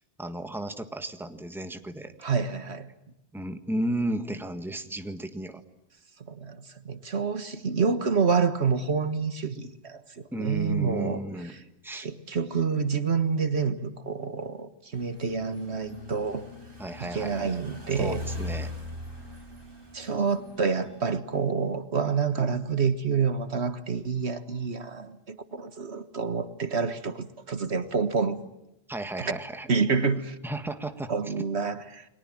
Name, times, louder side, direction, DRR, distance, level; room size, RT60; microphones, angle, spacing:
voice 1, 0.2-2.1 3.3-5.6 10.3-11.5 11.8-12.1 16.8-17.6 18.0-18.7 28.9-29.7 30.4-31.3, right 1 dB, ahead, 1.6 m, -34 dB
voice 2, 2.2-2.9 6.3-11.2 11.9-16.5 17.0-18.2 19.9-28.4 29.2-29.3 29.7-30.4 31.1-32.1, right 5 dB, 65° right, 1.7 m, -28 dB
sound 1, 14.9-21.2, left 1 dB, 50° right, 5.5 m, -40 dB
29.5 x 22.5 x 7.6 m
omnidirectional pair, 1.2 m